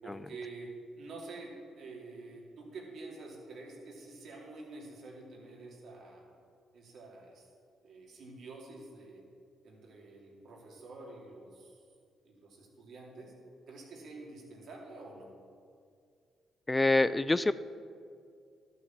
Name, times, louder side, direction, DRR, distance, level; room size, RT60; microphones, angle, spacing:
voice 1, 0.0-6.3 6.7-7.5 7.8-9.2 9.6-11.9 12.2-13.3 13.7-15.3, right 3 dB, 65° right, -1 dB, 2.7 m, -48 dB
voice 2, 16.7-17.5, left 2 dB, 20° left, 15 dB, 0.4 m, -26 dB
12.0 x 6.6 x 7.3 m, 2.3 s
hypercardioid pair, 55°, 0 cm